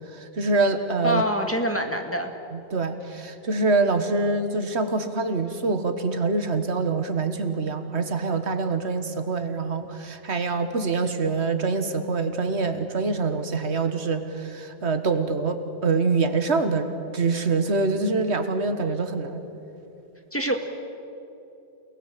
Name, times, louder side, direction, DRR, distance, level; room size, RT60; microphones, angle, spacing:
voice 1, 0.1-1.2 2.5-19.4, right 3 dB, 85° right, 8 dB, 1.7 m, -25 dB
voice 2, 1.0-2.3 20.3-20.5, equal, 10° left, 3 dB, 1.9 m, -25 dB
28.5 x 19.5 x 7.6 m, 2.8 s
omnidirectional pair, 1.1 m